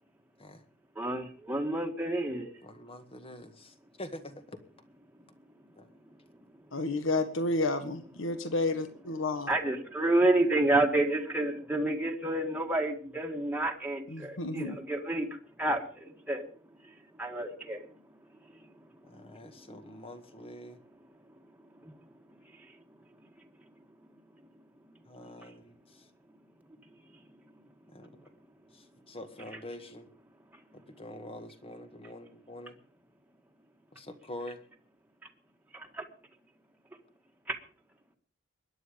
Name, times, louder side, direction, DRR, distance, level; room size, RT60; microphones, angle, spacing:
voice 1, 0.9-2.5 9.5-15.3 15.6-16.5 17.2-17.8 21.8-21.9 35.7-36.0 37.5-37.6, right 2 dB, 10° right, 1 dB, 1.8 m, -29 dB
voice 2, 2.6-4.6 5.8-5.9 19.0-20.8 25.1-26.0 27.9-28.1 28.7-30.1 30.7-32.8 33.9-34.6, left 1 dB, 30° left, 8 dB, 1.8 m, -45 dB
voice 3, 6.7-9.5 14.1-14.8, left 2 dB, 65° left, 9 dB, 1.7 m, -31 dB
22.0 x 10.5 x 5.2 m, 0.41 s
head